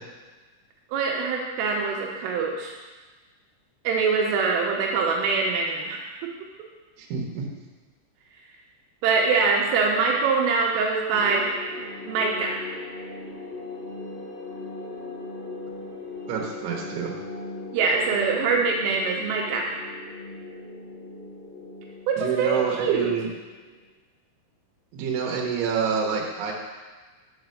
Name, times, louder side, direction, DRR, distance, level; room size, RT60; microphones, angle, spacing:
voice 1, 0.9-2.7 3.8-6.3 9.0-11.6 12.1-12.6 17.7-19.6 22.1-23.1, right 4 dB, 85° right, -1 dB, 3.3 m, -24 dB
voice 2, 7.0-7.4 16.3-17.2 22.2-23.3 24.9-26.5, right 6 dB, 70° right, 0 dB, 2.9 m, -27 dB
sound 1, 11.1-23.9, left 2 dB, 70° left, 2.3 m, -39 dB
7.4 x 4.9 x 6.5 m, 1.3 s
omnidirectional pair, 5.9 m